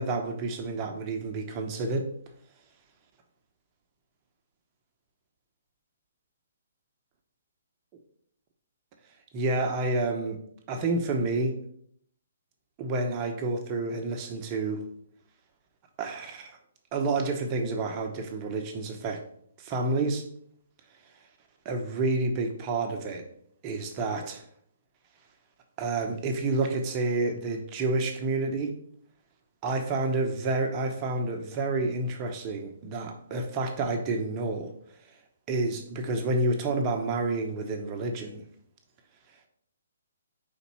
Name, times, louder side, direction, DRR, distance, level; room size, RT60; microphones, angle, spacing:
voice 1, 0.0-2.1 9.3-10.4 10.7-11.6 12.8-14.9 16.0-16.6 16.9-19.2 19.6-20.2 21.6-23.2 23.6-24.4 25.8-28.8 29.6-34.7 35.5-38.4, right 2 dB, 30° right, 4 dB, 0.9 m, -29 dB
5.2 x 4.1 x 5.4 m, 0.64 s
hypercardioid pair, 135°, 0 cm